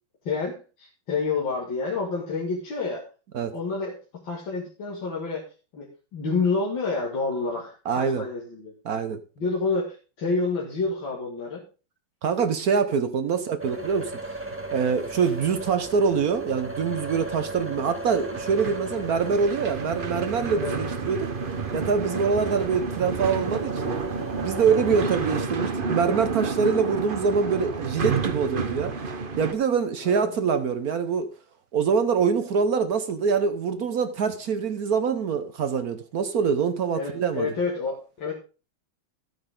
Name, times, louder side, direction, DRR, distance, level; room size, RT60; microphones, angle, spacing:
voice 1, 0.2-3.1 3.5-5.4 5.7-8.7 9.4-11.6 20.6-20.8 30.0-30.4 36.9-38.3, left 4 dB, 70° left, 2.8 m, -29 dB
voice 2, 7.9-8.2 8.8-9.2 12.2-14.1 14.7-21.3 21.7-23.9 24.4-29.0 29.4-31.3 31.7-37.5, right 6 dB, 55° right, 1.1 m, -24 dB
sound 1, 13.6-25.5, right 2 dB, 5° right, 1.5 m, -37 dB
sound 2, 18.3-29.5, right 4 dB, 40° right, 0.8 m, -30 dB
14.0 x 8.9 x 3.7 m
omnidirectional pair, 2.2 m